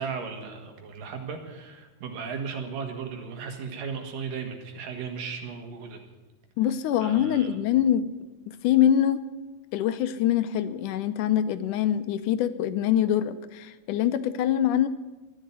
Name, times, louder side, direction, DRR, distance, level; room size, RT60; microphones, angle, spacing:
voice 1, 0.0-6.0 7.0-7.5, right 5 dB, 85° right, 4 dB, 3.6 m, -36 dB
voice 2, 6.6-8.1 8.5-9.2 9.7-14.9, left 10 dB, 80° left, 12 dB, 2.2 m, -24 dB
13.0 x 10.5 x 9.6 m, 1.2 s
omnidirectional pair, 3.8 m